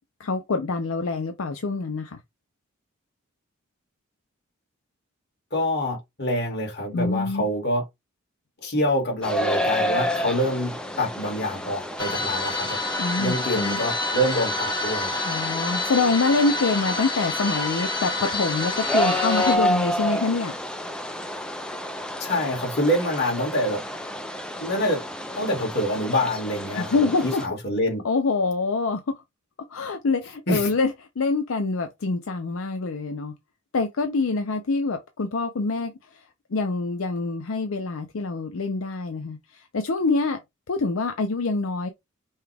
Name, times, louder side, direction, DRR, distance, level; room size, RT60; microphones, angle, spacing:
voice 1, 0.2-2.2 6.9-7.5 13.0-13.8 15.2-20.5 26.8-27.4 28.0-29.2 29.7-30.9 31.2-33.3 33.7-36.2 36.5-40.4 40.7-41.9, left 3 dB, 75° left, 0.6 m, -25 dB
voice 2, 5.5-7.8 8.6-12.8 13.2-15.1 22.2-23.8 24.6-25.1 25.3-28.0 30.5-30.7, equal, 50° left, 2.1 m, -26 dB
sound 1, 9.2-27.5, equal, 5° left, 0.5 m, -30 dB
sound 2, 12.0-19.6, left 2 dB, 20° left, 1.4 m, -28 dB
5.5 x 2.3 x 3.4 m
head